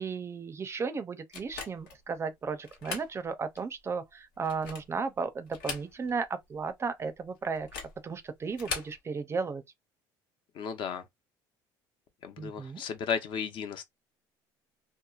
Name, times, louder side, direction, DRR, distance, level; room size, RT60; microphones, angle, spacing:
voice 1, 0.0-7.7 8.0-9.6 12.4-12.8, right 5 dB, 30° right, 0.4 m, -34 dB
sound 1, 1.3-2.0 2.6-3.1 3.6-3.7 4.3-5.0 5.5-6.3 6.5-6.6 7.6-8.0 8.5-9.0, left 5 dB, 85° left, 1.2 m, -39 dB
voice 2, 10.6-11.0 12.2-13.8, left 7 dB, 60° left, 0.6 m, -34 dB
2.9 x 2.0 x 2.3 m
supercardioid pair, 100°, 10 cm